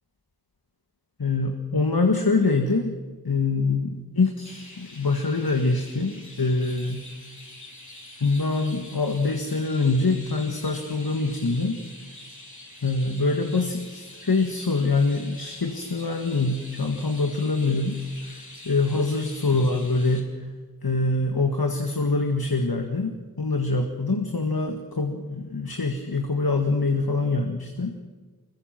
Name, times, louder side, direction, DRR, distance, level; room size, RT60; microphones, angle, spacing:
voice 1, 1.2-3.0 3.2-7.1 8.2-11.8 12.8-20.3 20.8-28.0, left 3 dB, 75° left, 3 dB, 1.9 m, -24 dB
Chirp tweet, 4.5-20.2, left 1 dB, 50° left, 5.3 m, -45 dB
24.5 x 22.0 x 6.0 m, 1.3 s
wide cardioid pair, 40°, 37 cm